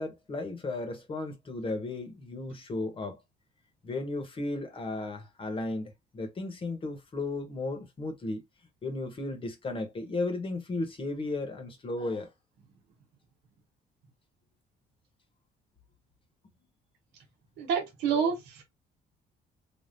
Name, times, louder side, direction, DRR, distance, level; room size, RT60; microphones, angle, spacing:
voice 1, 0.0-3.2 3.8-8.4 8.8-12.3, left 2 dB, 30° left, 1.0 m, -35 dB
voice 2, 17.6-18.6, right 7 dB, 90° right, 1.2 m, -28 dB
3.5 x 2.3 x 2.6 m
cardioid pair, 110°, 17 cm